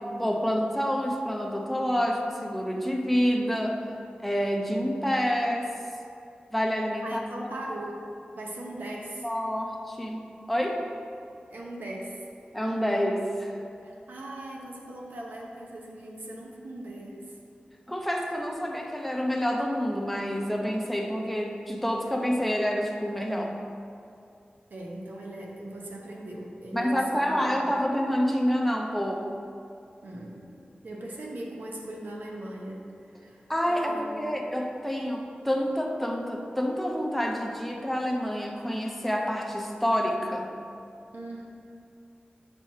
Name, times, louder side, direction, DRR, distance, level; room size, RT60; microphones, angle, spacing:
voice 1, 0.0-3.8 4.2-5.7 6.5-7.2 9.2-10.8 12.5-13.6 17.9-23.5 26.7-29.3 33.5-40.5, equal, 5° left, 1 dB, 0.7 m, -28 dB
voice 2, 7.0-8.0 8.4-9.3 11.5-12.2 13.8-17.2 24.7-27.7 30.0-30.4 30.8-32.8 33.1-34.2 41.1-41.5, right 1 dB, 75° right, -2 dB, 0.9 m, -39 dB
6.6 x 6.1 x 2.8 m, 2.5 s
wide cardioid pair, 70°, 3 cm